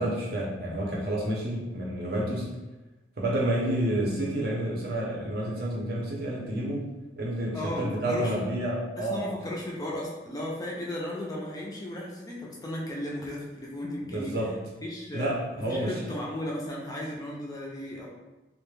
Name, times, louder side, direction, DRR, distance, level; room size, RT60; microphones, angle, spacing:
voice 1, 0.0-2.5 3.2-6.9 7.2-9.3 14.0-14.5 15.1-16.0, right 1 dB, 60° right, -3 dB, 0.6 m, -29 dB
voice 2, 7.5-8.4 9.0-14.4 14.8-15.3 15.6-18.1, left 1 dB, 20° left, -3 dB, 0.4 m, -35 dB
2.2 x 2.1 x 3.1 m, 1.1 s
head